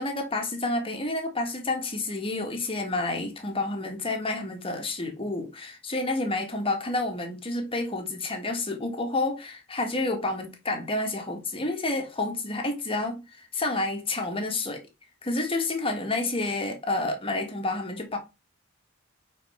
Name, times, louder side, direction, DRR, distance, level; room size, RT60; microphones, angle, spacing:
voice 1, 0.0-14.8 15.2-18.2, left 2 dB, 25° left, 1.6 m, -29 dB
5.3 x 4.5 x 5.5 m
head